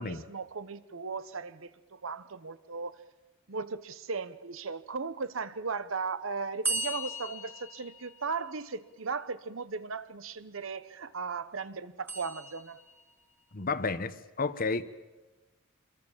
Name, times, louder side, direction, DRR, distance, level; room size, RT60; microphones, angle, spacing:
voice 1, 0.0-3.0 3.5-12.8, right 4 dB, 70° right, 1.0 m, -37 dB
sound 1, 6.6-8.6 12.1-13.1, right 1 dB, 10° right, 2.0 m, -37 dB
voice 2, 13.5-14.9, left 4 dB, 45° left, 1.0 m, -32 dB
25.5 x 22.0 x 7.4 m
head